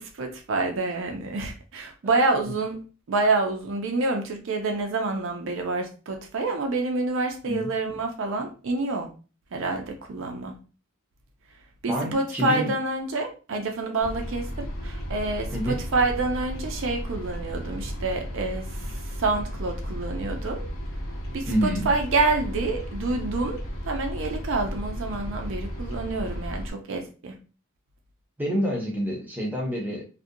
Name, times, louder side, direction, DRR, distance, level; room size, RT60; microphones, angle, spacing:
voice 1, 0.0-2.8 3.1-9.1 9.5-10.5 11.8-20.6 21.3-23.6 23.9-27.4, right 3 dB, 60° right, 3 dB, 0.4 m, -27 dB
voice 2, 11.9-12.7 15.5-15.8 21.5-21.9 28.4-30.1, equal, 10° right, -1 dB, 0.6 m, -27 dB
sound 1, 14.0-26.7, equal, 70° left, 0.7 m, -34 dB
2.4 x 2.1 x 2.6 m, 0.35 s
head